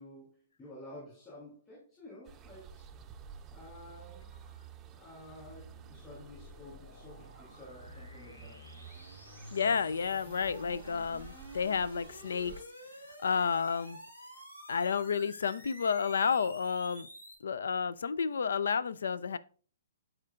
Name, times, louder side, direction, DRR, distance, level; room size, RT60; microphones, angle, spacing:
voice 1, 0.0-2.8 3.5-4.3 4.9-8.6, left 1 dB, 20° left, 3.1 m, -51 dB
sound 1, 2.2-12.6, right 8 dB, 20° right, 0.6 m, -53 dB
sound 2, 4.7-17.3, equal, 85° left, 2.2 m, -50 dB
voice 2, 9.5-12.5 13.2-14.0 14.7-17.1 17.4-19.4, left 6 dB, 70° left, 0.4 m, -31 dB
11.5 x 4.4 x 2.4 m
figure-of-eight pair, 120°, 0 cm